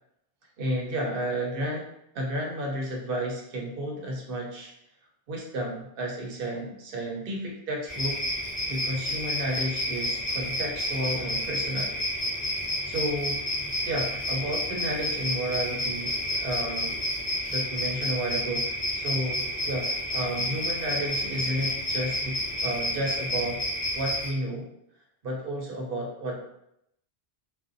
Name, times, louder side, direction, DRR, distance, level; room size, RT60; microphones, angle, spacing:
voice 1, 0.6-1.9 2.1-4.7 5.3-8.2 8.7-12.0 12.9-13.4 13.9-16.9 17.5-23.6 23.9-24.7 25.2-26.4, right 1 dB, 60° right, 0 dB, 0.8 m, -32 dB
sound 1, 7.9-24.3, equal, 20° left, 0.5 m, -30 dB
2.5 x 2.1 x 2.5 m, 0.79 s
omnidirectional pair, 1.1 m